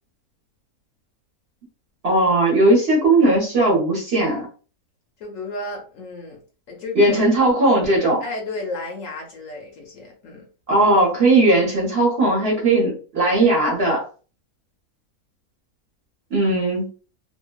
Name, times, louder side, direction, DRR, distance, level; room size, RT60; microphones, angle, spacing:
voice 1, 2.0-4.5 6.9-8.2 10.7-14.0 16.3-16.9, right 2 dB, 45° right, -3 dB, 1.0 m, -18 dB
voice 2, 5.2-6.4 6.7-7.3 8.2-10.4, left 2 dB, 65° left, 1 dB, 0.9 m, -33 dB
2.7 x 2.1 x 2.2 m, 0.37 s
omnidirectional pair, 1.6 m